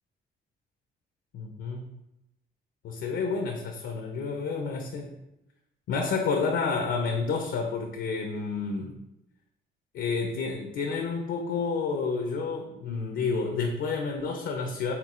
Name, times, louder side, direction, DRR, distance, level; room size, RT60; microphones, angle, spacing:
voice 1, 1.3-1.9 2.8-5.1 5.9-8.9 9.9-14.9, left 4 dB, 65° left, 3 dB, 0.5 m, -30 dB
4.4 x 3.6 x 2.4 m, 0.88 s
cardioid pair, 90°, 20 cm